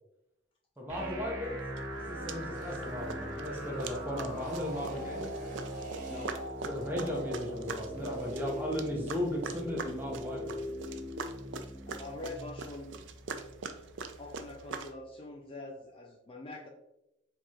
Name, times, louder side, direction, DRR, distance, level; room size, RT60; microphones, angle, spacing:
voice 1, 0.8-1.6 1.9-5.3 6.7-10.6, left 1 dB, 10° right, -2 dB, 0.7 m, -36 dB
sound 1, 0.9-14.9, equal, 85° right, 1.0 m, -41 dB
sound 2, 1.8-1.9 2.3-2.8 3.1-14.9, right 4 dB, 65° right, 0.3 m, -42 dB
sound 3, 1.9-10.0, equal, 40° right, 0.8 m, -51 dB
voice 2, 6.1-6.4 11.9-12.9 14.2-16.7, left 2 dB, 25° left, 0 dB, 0.3 m, -44 dB
4.7 x 2.9 x 2.4 m, 0.90 s
head